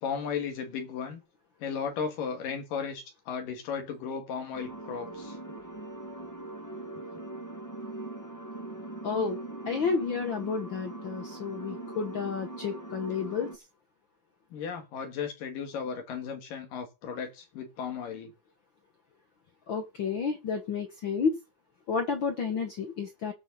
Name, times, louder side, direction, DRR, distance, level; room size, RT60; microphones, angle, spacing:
voice 1, 0.0-1.2 1.6-5.4 14.5-18.3, left 6 dB, 90° left, 4 dB, 3.7 m, -35 dB
sound 1, 4.5-13.6, right 2 dB, 10° left, 0.8 m, -41 dB
voice 2, 9.0-9.4 9.7-13.5 19.7-21.4 21.9-23.3, left 5 dB, 60° left, 4 dB, 1.2 m, -31 dB
19.0 x 7.2 x 4.1 m, 0.28 s
omnidirectional pair, 3.7 m